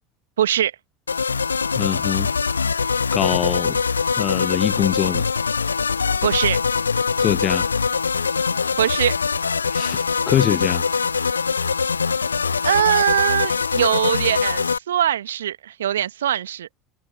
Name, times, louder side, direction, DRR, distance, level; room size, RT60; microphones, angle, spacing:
voice 1, 0.4-0.7 6.2-6.6 8.8-9.2 12.6-16.7, right 10 dB, 70° right, 1.8 m, -21 dB
sound 1, 1.1-14.8, left 5 dB, 80° left, 1.7 m, -23 dB
voice 2, 1.7-2.3 3.1-3.8 4.2-5.3 7.2-7.7 9.7-10.8, left 12 dB, 40° left, 0.8 m, -23 dB
figure-of-eight pair, 75°, 0 cm